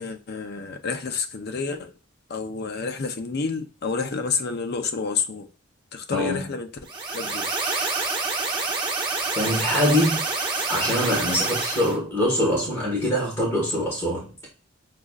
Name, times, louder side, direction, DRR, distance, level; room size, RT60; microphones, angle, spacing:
voice 1, 0.0-2.0 2.3-5.5 5.9-7.5, left 5 dB, 50° left, 0.6 m, -29 dB
voice 2, 6.1-6.5 9.4-10.2 10.7-14.5, equal, 10° left, 1.4 m, -24 dB
sound 1, 6.8-11.9, right 3 dB, 20° right, 1.5 m, -27 dB
6.3 x 2.4 x 2.4 m
head